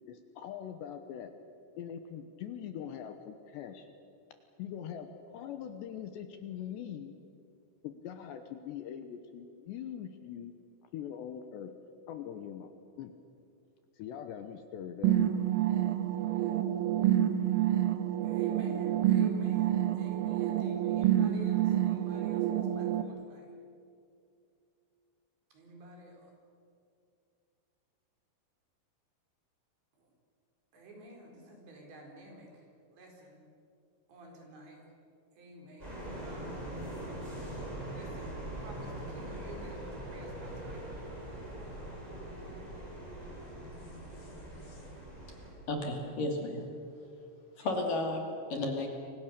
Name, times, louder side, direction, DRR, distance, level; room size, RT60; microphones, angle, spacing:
voice 1, 0.1-1.3 1.8-3.9 4.6-7.1 7.8-10.5 10.9-11.7 12.1-13.1 14.0-15.3, left 9 dB, 75° left, 8 dB, 2.9 m, -42 dB
sound 1, 15.0-23.0, right 11 dB, 85° right, 3.9 m, -28 dB
voice 2, 18.2-23.4 25.5-26.3 30.0-30.1 30.7-32.7 32.9-33.4 34.1-34.8 35.4-36.6 37.9-40.8 47.6-47.7, right 1 dB, 60° right, 1 dB, 6.5 m, -50 dB
sound 2, 35.8-45.5, right 1 dB, 5° right, 7.0 m, -42 dB
voice 3, 45.7-46.6 47.6-48.9, left 2 dB, 50° left, 2 dB, 3.6 m, -33 dB
30.0 x 24.0 x 6.8 m, 2.4 s
omnidirectional pair, 5.7 m